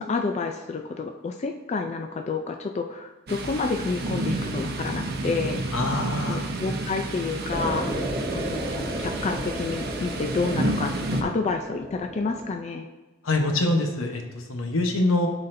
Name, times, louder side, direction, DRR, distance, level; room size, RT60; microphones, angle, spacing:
voice 1, 0.0-5.6 6.3-7.9 8.3-12.9, left 4 dB, 35° left, 4 dB, 0.3 m, -29 dB
Thunder, 3.3-11.2, right 2 dB, 50° right, 0.7 m, -30 dB
voice 2, 5.7-6.4 13.2-15.3, left 2 dB, 85° left, 3 dB, 1.0 m, -24 dB
sound 1, 7.5-12.5, equal, 15° right, 0.8 m, -33 dB
11.5 x 4.0 x 2.6 m, 1.1 s
head